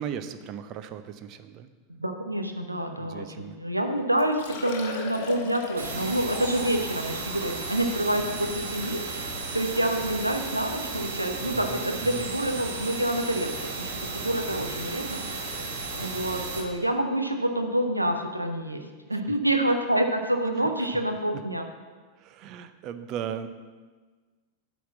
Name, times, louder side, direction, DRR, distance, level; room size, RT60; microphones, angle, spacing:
voice 1, 0.0-1.7 3.0-3.6 11.5-12.3 20.8-20.9 22.2-23.5, right 8 dB, 40° right, 10 dB, 0.5 m, -37 dB
voice 2, 1.9-15.6 16.0-21.6, right 1 dB, 85° right, 5 dB, 0.7 m, -28 dB
Liquid, 3.7-3.8 4.2-10.1 10.8-10.9 11.3-11.4 13.1-13.2 13.3-13.4, left 4 dB, 50° left, 1.1 m, -40 dB
sound 1, 5.8-16.6, right 3 dB, 65° right, 1.3 m, -34 dB
8.5 x 4.1 x 7.0 m, 1.4 s
figure-of-eight pair, 90°, 0 cm